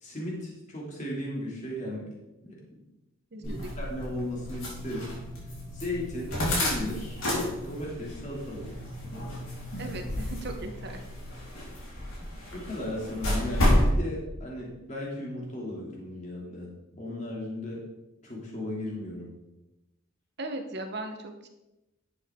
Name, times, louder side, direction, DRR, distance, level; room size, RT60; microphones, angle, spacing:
voice 1, 0.0-2.1 2.4-2.6 3.4-5.1 5.7-7.2 7.6-8.7 9.8-10.0 12.5-17.8 18.2-19.3, left 1 dB, 35° left, -3 dB, 2.7 m, -36 dB
voice 2, 3.3-3.9 9.8-11.0 20.4-21.5, right 2 dB, 55° right, 5 dB, 1.0 m, -38 dB
sound 1, 3.4-13.9, left 1 dB, 85° left, 3.9 m, -31 dB
11.0 x 7.8 x 3.7 m, 0.98 s
head